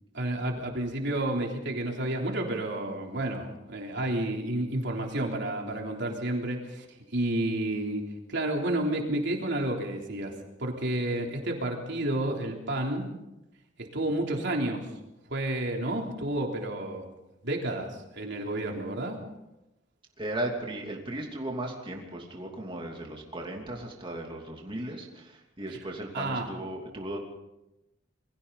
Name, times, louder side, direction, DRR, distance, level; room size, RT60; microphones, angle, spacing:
voice 1, 0.1-13.1 13.8-14.9 15.3-17.1 17.4-19.2 26.1-26.5, right 1 dB, 65° right, 1 dB, 3.6 m, -31 dB
voice 2, 20.2-27.2, right 1 dB, 25° right, 0 dB, 3.0 m, -36 dB
28.0 x 22.0 x 4.1 m, 0.93 s
head